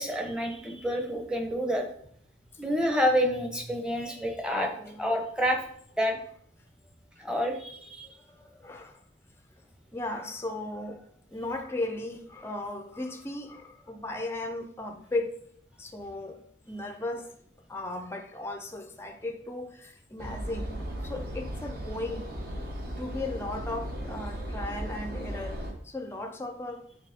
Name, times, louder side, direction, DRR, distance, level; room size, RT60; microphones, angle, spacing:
voice 1, 0.0-1.9 2.6-4.7 5.0-5.6 6.0-6.2 7.2-8.1, equal, 5° right, 0.9 m, -28 dB
voice 2, 4.6-5.1 8.0-9.0 9.9-15.4 15.8-17.3 17.7-20.7 21.0-22.3 23.0-26.9, left 2 dB, 10° left, 0.5 m, -36 dB
sound 1, 20.2-25.7, equal, 50° right, 1.2 m, -36 dB
8.4 x 4.1 x 3.5 m
head